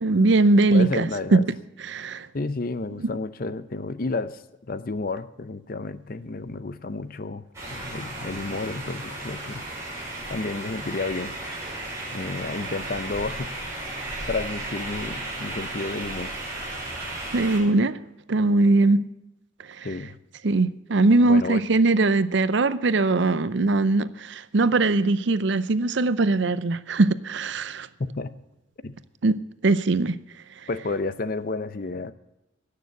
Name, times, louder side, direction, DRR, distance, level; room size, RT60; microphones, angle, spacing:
voice 1, 0.0-1.4 1.9-2.3 3.0-3.2 17.3-18.0 18.3-19.0 19.8-19.9 20.4-27.9 29.2-30.2, right 2 dB, 60° right, 0.6 m, -21 dB
voice 2, 0.7-1.4 2.3-9.7 10.3-11.3 12.1-13.8 14.3-16.3 19.8-20.2 21.2-21.6 28.0-28.3 28.8-29.0 30.7-32.1, left 3 dB, 45° left, 0.6 m, -31 dB
sound 1, 7.5-17.6, right 2 dB, 15° right, 5.2 m, -34 dB
16.5 x 6.8 x 8.1 m
head